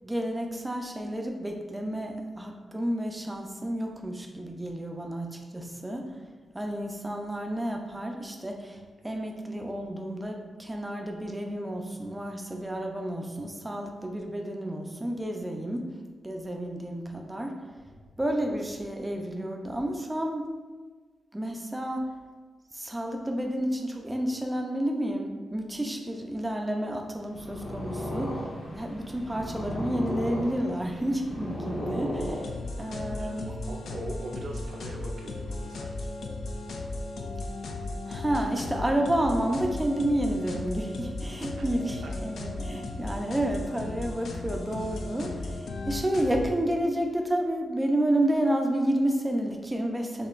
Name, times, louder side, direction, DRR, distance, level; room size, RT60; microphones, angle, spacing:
voice 1, 0.0-6.1 6.5-15.9 16.2-17.6 18.2-20.5 21.3-22.0 22.7-28.4 28.7-32.5 32.8-33.6 38.1-50.3, right 1 dB, 15° right, 2 dB, 0.6 m, -30 dB
Purr, 27.2-32.9, equal, 40° left, 1.4 m, -35 dB
sound 1, 32.1-46.5, left 2 dB, 75° left, 0.4 m, -36 dB
voice 2, 33.2-36.1 41.6-41.8 42.0-42.1, right 2 dB, 60° right, 1 dB, 0.6 m, -42 dB
6.5 x 2.8 x 2.5 m, 1.4 s
cardioid pair, 100°, 0 cm